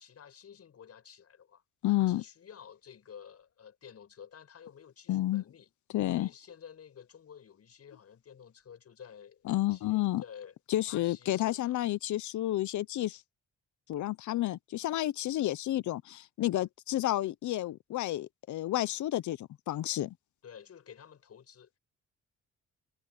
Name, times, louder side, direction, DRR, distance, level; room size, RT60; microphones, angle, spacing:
voice 1, 0.0-5.7 6.1-10.6 10.9-11.8 20.4-21.7, left 8 dB, 55° left, 7.9 m, -52 dB
voice 2, 1.8-2.2 5.1-5.4 5.9-6.3 9.5-10.2 10.7-13.2 13.9-20.1, left 15 dB, 70° left, 0.8 m, -30 dB
cardioid pair, 90°, 30 cm